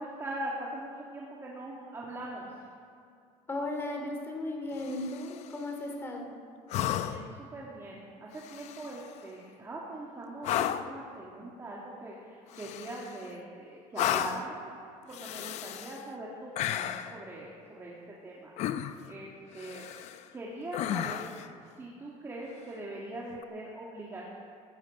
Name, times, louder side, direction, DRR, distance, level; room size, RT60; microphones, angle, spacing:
voice 1, 0.0-2.7 6.8-14.6 15.1-18.5 19.1-19.9 20.3-21.3 21.8-24.4, right 1 dB, 20° right, -4 dB, 2.0 m, -42 dB
voice 2, 3.5-6.3, left 2 dB, 15° left, 1 dB, 2.6 m, -36 dB
sound 1, 4.8-5.5 6.7-7.4 8.4-9.1 10.4-11.0 12.5-13.3 13.9-14.5 15.1-16.0 16.6-17.2 18.6-19.1 19.6-20.2 20.7-21.5 23.3-23.4, left 11 dB, 55° left, 0.7 m, -33 dB
15.5 x 13.5 x 5.4 m, 2.4 s
cardioid pair, 145°, 13 cm